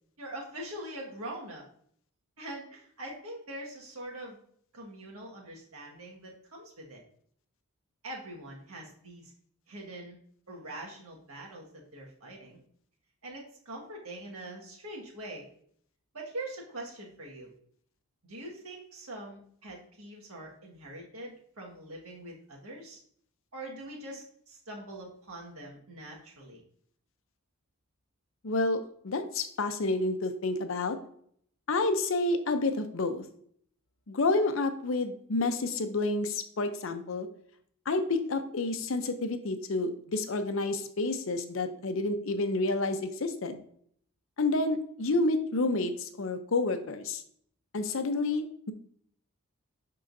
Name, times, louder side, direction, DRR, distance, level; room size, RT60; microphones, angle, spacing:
voice 1, 0.2-1.6 2.4-4.4 4.7-7.0 8.0-9.3 9.7-10.2 10.5-12.6 13.2-15.5 16.1-17.5 18.3-23.0 23.5-26.6, right 1 dB, 80° right, -1 dB, 1.6 m, -43 dB
voice 2, 28.4-31.0 31.7-33.2 34.1-37.3 37.9-43.6 44.4-47.2 47.7-48.7, left 2 dB, 60° left, 8 dB, 0.6 m, -29 dB
11.0 x 3.8 x 2.6 m, 0.63 s
head